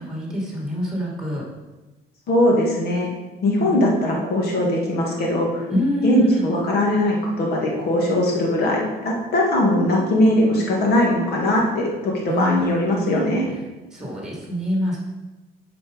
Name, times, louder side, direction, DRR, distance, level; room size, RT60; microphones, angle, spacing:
voice 1, 0.0-1.5 3.6-4.2 5.7-6.6 12.3-13.3 13.9-15.0, left 1 dB, 5° right, -2 dB, 2.7 m, -26 dB
voice 2, 2.3-3.1 3.4-5.7 6.0-13.5, left 1 dB, 70° left, -1 dB, 2.4 m, -20 dB
8.1 x 5.2 x 5.3 m, 1.1 s
cardioid pair, 110°, 17 cm